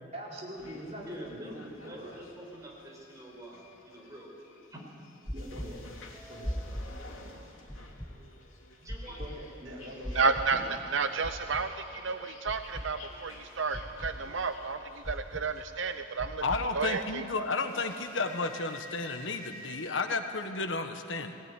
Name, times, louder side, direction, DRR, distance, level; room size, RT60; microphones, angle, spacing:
voice 1, 0.0-2.1 5.3-5.8 6.3-6.5 9.2-10.2, equal, 35° right, -4 dB, 4.8 m, -42 dB
sound 1, 0.6-19.9, left 2 dB, 85° left, 3.2 m, -52 dB
voice 2, 1.0-1.5 1.8-4.8 8.8-9.2, right 1 dB, 15° right, -2 dB, 5.1 m, -48 dB
sound 2, 5.3-5.7 6.4-6.9 7.7-8.1 8.9-9.3 10.0-10.5 11.2-11.6 12.5-12.9 13.7-14.1 15.0-15.4 16.2-16.6, equal, 5° left, 1.7 m, -37 dB
voice 3, 10.1-10.6 10.9-14.8 15.0-16.4 16.7-17.2, right 4 dB, 65° right, 9 dB, 0.7 m, -31 dB
voice 4, 16.4-21.3, left 3 dB, 65° left, 7 dB, 1.4 m, -32 dB
19.0 x 18.5 x 9.8 m, 2.7 s
head